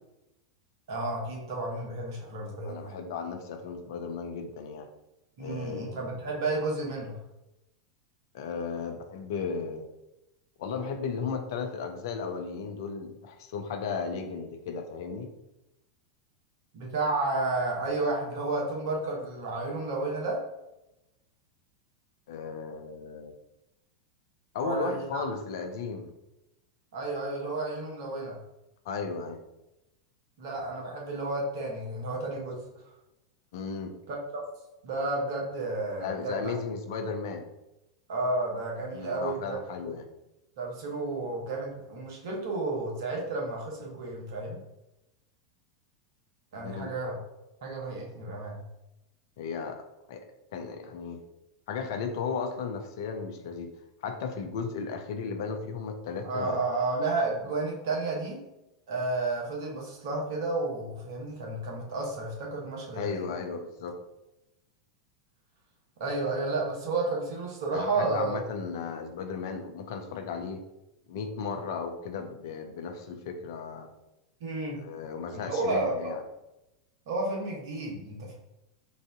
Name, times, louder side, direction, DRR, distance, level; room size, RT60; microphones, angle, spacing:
voice 1, 0.9-2.9 5.4-7.2 16.7-20.4 24.6-25.2 26.9-28.4 30.4-32.6 34.1-34.4 34.8-36.5 38.1-39.9 40.6-44.6 46.5-47.2 47.6-48.6 56.2-58.4 58.9-63.3 66.0-68.4 74.4-74.8 75.3-76.1 77.1-78.3, right 2 dB, 65° right, -1 dB, 1.2 m, -31 dB
voice 2, 2.6-4.9 5.4-6.1 8.3-9.8 10.6-15.3 22.3-23.3 24.5-26.1 28.9-29.4 33.5-34.0 36.0-37.5 38.9-40.1 46.6-46.9 49.4-50.3 50.5-51.2 51.7-53.7 54.0-56.6 62.9-64.0 67.7-70.7 71.1-73.9 74.7-76.2, left 5 dB, 60° left, 6 dB, 0.6 m, -35 dB
4.1 x 2.6 x 3.6 m, 0.93 s
figure-of-eight pair, 90°, 2 cm